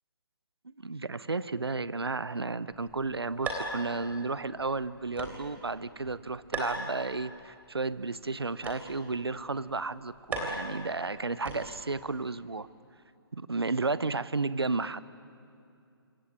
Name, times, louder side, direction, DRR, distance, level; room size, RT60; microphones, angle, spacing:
voice 1, 0.6-12.7 13.3-15.0, right 3 dB, 80° right, 16 dB, 0.9 m, -33 dB
sound 1, 2.7-12.0, right 2 dB, 10° right, 3.5 m, -41 dB
26.5 x 24.0 x 8.8 m, 2.5 s
figure-of-eight pair, 135°, 13 cm